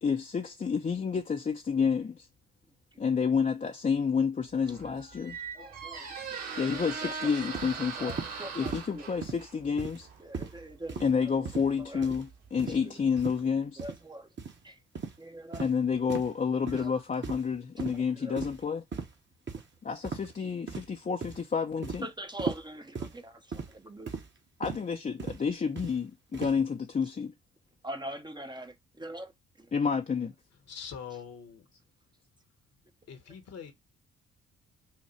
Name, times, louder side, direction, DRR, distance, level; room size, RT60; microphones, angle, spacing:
voice 1, 0.0-2.3 3.0-5.4 6.6-10.1 11.0-13.8 15.6-18.8 19.8-22.1 24.6-27.3 29.7-30.3, left 6 dB, 25° left, 0.6 m, -29 dB
Squeak, 4.5-13.3, right 6 dB, 60° right, 2.3 m, -42 dB
voice 2, 5.6-6.4 7.0-7.3 8.0-9.1 10.2-11.0 11.9-12.1 12.8-13.0 13.8-14.3 14.6-14.7 15.2-15.6 16.7-16.9 17.8-17.9 18.2-18.4 22.0-24.1 27.8-29.3, right 1 dB, 15° right, 0.8 m, -42 dB
sound 1, 7.5-7.7 8.1-8.3 8.7-8.9 9.2-9.4 9.8-10.1 10.3-10.6 10.9-11.1 11.5-11.7 12.0-12.2 12.6-12.8 13.2-13.4 13.8-14.0 14.4-14.6 15.0-15.2 15.5-15.7 16.1-16.3 16.7-16.9 17.2-17.5 17.8-18.0 18.4-18.6 18.9-19.1 19.5-19.6 20.0-20.3 20.7-21.0 21.2-21.4 21.8-22.0 22.4-22.6 23.0-23.2 23.5-23.7 24.1-24.3 24.6-24.8 25.2-25.4 25.8-25.9 26.3-26.6, right 5 dB, 40° right, 1.2 m, -37 dB
voice 3, 30.6-31.7 33.1-33.7, left 7 dB, 60° left, 1.2 m, -44 dB
5.7 x 2.1 x 3.0 m
hypercardioid pair, 50°, 29 cm